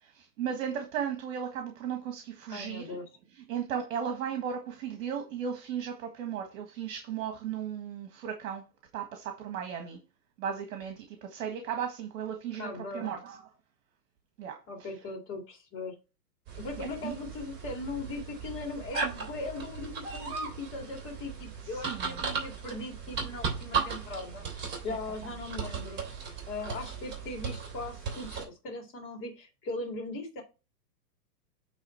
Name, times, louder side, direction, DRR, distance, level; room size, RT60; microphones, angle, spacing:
voice 1, 0.0-3.0 3.4-8.6 8.9-10.0 10.4-13.4 14.4-14.9 16.8-17.1 21.6-22.2 25.4-25.5, right 8 dB, 55° right, 1.7 m, -36 dB
voice 2, 2.5-3.0 12.6-13.2 14.7-15.9 16.6-26.0 26.5-30.4, left 2 dB, 25° left, 2.4 m, -39 dB
sound 1, 16.5-28.4, right 5 dB, 20° right, 3.1 m, -37 dB
9.1 x 3.5 x 4.4 m
hypercardioid pair, 145°, 49 cm